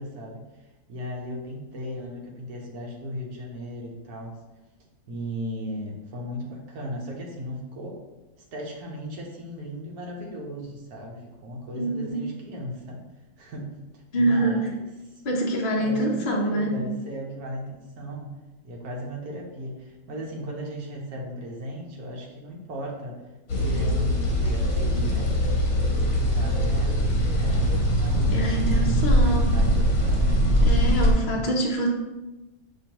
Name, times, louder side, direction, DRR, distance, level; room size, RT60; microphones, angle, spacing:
voice 1, 0.0-4.4 5.1-8.0 8.4-13.0 13.4-13.7 13.9-15.2 15.7-18.3 18.6-23.2 23.5-25.4 26.1-27.0 27.3-31.5, equal, 60° right, -1 dB, 1.2 m, -36 dB
voice 2, 11.8-12.3 14.1-14.7 15.2-16.8 28.3-29.6 30.6-31.9, right 1 dB, 75° left, -3 dB, 0.4 m, -25 dB
sound 1, 23.5-31.1, equal, 55° left, 1.1 m, -22 dB
5.7 x 3.1 x 2.9 m, 1.1 s
omnidirectional pair, 2.1 m